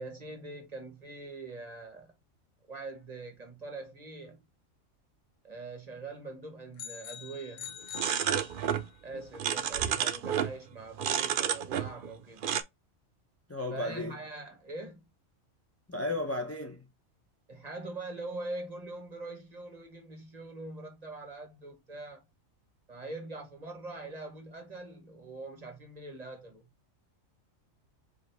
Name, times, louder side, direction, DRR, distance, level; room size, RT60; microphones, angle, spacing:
voice 1, 0.0-2.1 2.7-4.4 5.4-7.8 9.0-12.5 13.7-15.1 17.5-22.2 22.9-26.7, right 2 dB, 30° right, 1.3 m, -43 dB
sound 1, 6.8-9.0, left 9 dB, 70° left, 1.0 m, -44 dB
sound 2, 7.9-8.9 9.1-10.6 11.0-12.1 12.4-12.6, right 8 dB, 65° right, 0.5 m, -30 dB
voice 2, 13.5-14.2 15.9-16.9, left 2 dB, 20° left, 0.4 m, -34 dB
5.0 x 2.9 x 3.3 m
omnidirectional pair, 1.4 m